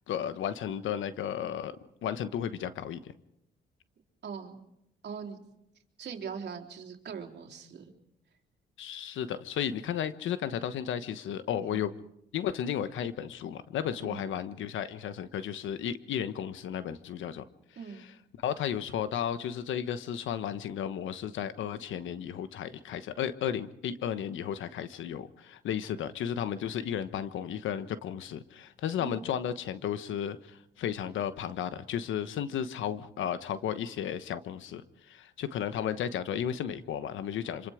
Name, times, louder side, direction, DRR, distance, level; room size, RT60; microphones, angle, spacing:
voice 1, 0.1-1.7 2.0-3.1 8.8-11.9 12.3-17.4 18.4-34.8 35.1-37.7, left 9 dB, 75° left, 12 dB, 1.2 m, -34 dB
voice 2, 4.2-4.6 5.0-5.4 6.0-7.9 11.6-11.9 14.0-14.3 17.7-18.1 29.0-29.2, right 6 dB, 60° right, 3 dB, 3.4 m, -41 dB
26.0 x 26.0 x 5.0 m, 0.81 s
cardioid pair, 90°, 20 cm